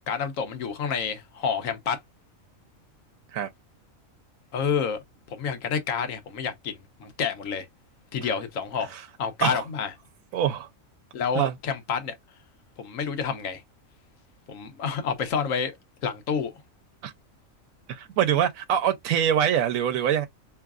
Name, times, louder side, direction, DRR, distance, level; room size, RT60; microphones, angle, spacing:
voice 1, 0.1-2.0 4.5-5.0 5.3-7.7 8.1-8.9 9.2-9.9 11.1-12.1 12.8-13.6 14.5-15.7 16.0-16.6, left 6 dB, 70° left, 1.3 m, -29 dB
voice 2, 10.3-10.7 11.3-11.5 17.0-17.1 17.9-20.3, right 9 dB, 90° right, 1.0 m, -24 dB
4.6 x 3.1 x 2.4 m
omnidirectional pair, 1.4 m